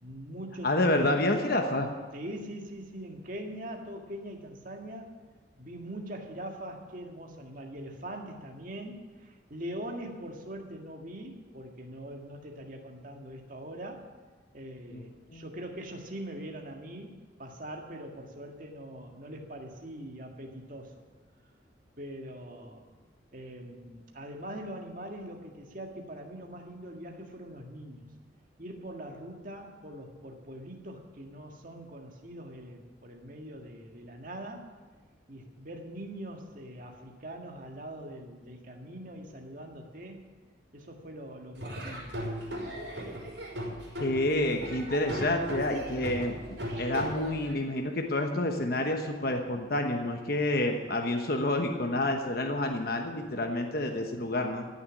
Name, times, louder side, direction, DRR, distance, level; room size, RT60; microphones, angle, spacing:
voice 1, 0.0-1.2 2.1-5.1 5.6-14.1 14.5-21.0 22.0-22.8 23.3-28.1 28.6-34.7 35.3-40.2 40.7-42.5, right 1 dB, 45° right, 2 dB, 1.9 m, -42 dB
voice 2, 0.6-1.9 14.9-15.1 15.3-15.4 44.0-46.3 46.8-54.7, left 1 dB, 50° left, 3 dB, 1.1 m, -28 dB
Laughter / Drum, 41.6-47.5, equal, 70° right, 5.3 m, -37 dB
15.5 x 7.1 x 9.7 m, 1.3 s
head